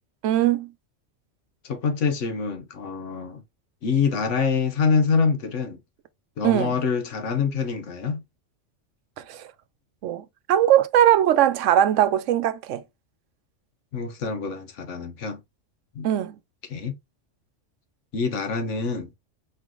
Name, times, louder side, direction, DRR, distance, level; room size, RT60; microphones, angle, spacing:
voice 1, 0.2-0.7 6.4-6.8 9.3-9.5 10.0-12.8 16.0-16.4, right 11 dB, 80° right, 0.9 m, -20 dB
voice 2, 1.6-3.4 3.8-5.8 6.4-8.2 13.9-15.4 15.9-16.1 16.7-16.9 18.1-19.1, left 5 dB, 80° left, 1.3 m, -25 dB
4.5 x 3.8 x 3.0 m
omnidirectional pair, 1.3 m